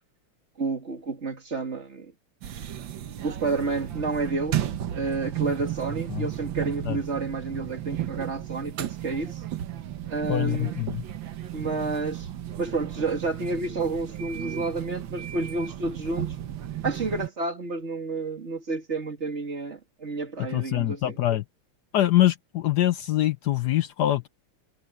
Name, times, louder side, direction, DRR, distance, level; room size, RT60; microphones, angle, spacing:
voice 1, 0.6-2.1 3.2-9.4 10.1-10.8 11.5-12.3 12.6-16.4 16.8-21.2, right 3 dB, 30° right, 2.5 m, -30 dB
sound 1, 2.4-17.3, right 11 dB, 65° right, 1.7 m, -34 dB
voice 2, 10.3-11.0 20.5-21.4 21.9-24.3, left 14 dB, 80° left, 0.9 m, -24 dB
omnidirectional pair, 2.4 m